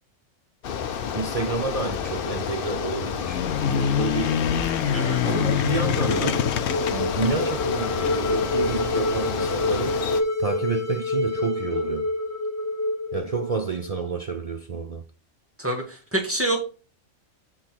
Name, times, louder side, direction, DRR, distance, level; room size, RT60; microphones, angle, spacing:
Bicycle, 0.6-10.2, left 8 dB, 55° left, 0.7 m, -30 dB
voice 1, 1.1-3.4 3.7-4.5 5.2-6.4 6.9-12.1 13.1-15.0, right 5 dB, 55° right, 0.4 m, -30 dB
sound 1, 3.2-8.2, left 8 dB, 80° left, 1.0 m, -26 dB
sound 2, 5.0-14.1, left 2 dB, 15° left, 0.9 m, -28 dB
voice 2, 15.6-16.6, right 1 dB, 10° right, 1.6 m, -26 dB
7.6 x 3.8 x 4.4 m
omnidirectional pair, 1.3 m